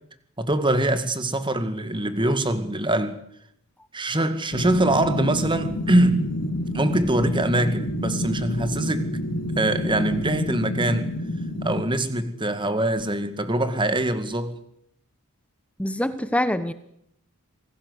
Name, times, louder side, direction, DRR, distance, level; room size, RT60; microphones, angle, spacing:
voice 1, 0.4-3.2 3.9-6.3 6.7-9.1 9.6-11.1 11.6-14.6, right 1 dB, 20° right, 2.0 m, -23 dB
sound 1, 4.5-11.8, left 1 dB, 70° left, 5.1 m, -28 dB
voice 2, 15.8-16.7, left 1 dB, 5° left, 1.0 m, -24 dB
27.0 x 19.0 x 8.2 m
head